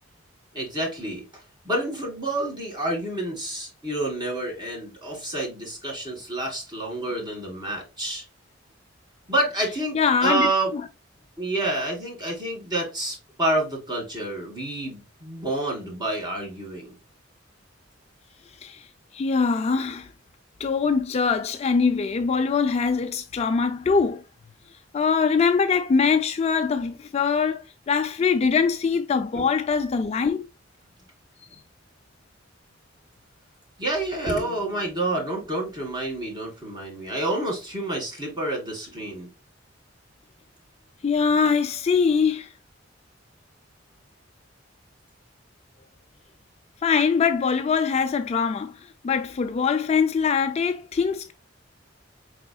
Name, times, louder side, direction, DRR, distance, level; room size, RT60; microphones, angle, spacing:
voice 1, 0.5-8.2 9.3-10.7 11.4-16.9 29.3-29.4 33.8-39.3, right 1 dB, 25° right, 1.9 m, -28 dB
voice 2, 9.9-10.8 18.6-18.9 19.1-20.1 20.6-24.2 24.9-30.4 41.0-42.5 46.8-51.3, left 5 dB, 35° left, 0.3 m, -23 dB
4.9 x 3.8 x 2.2 m
head